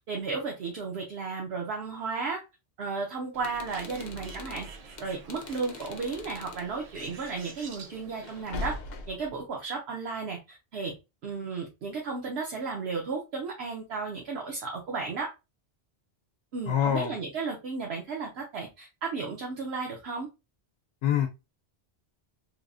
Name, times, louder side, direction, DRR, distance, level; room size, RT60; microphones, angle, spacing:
voice 1, 0.1-2.4 2.8-4.7 5.0-8.8 9.1-10.9 11.2-15.3 16.5-20.3, right 4 dB, 70° right, 1.0 m, -34 dB
sound 1, 3.3-6.7 8.2-9.3, left 3 dB, 55° left, 0.5 m, -41 dB
Bird, 3.3-8.4, right 4 dB, 50° right, 0.4 m, -47 dB
voice 2, 16.7-17.2 21.0-21.3, left 9 dB, 80° left, 0.9 m, -25 dB
3.3 x 2.5 x 2.3 m
omnidirectional pair, 1.1 m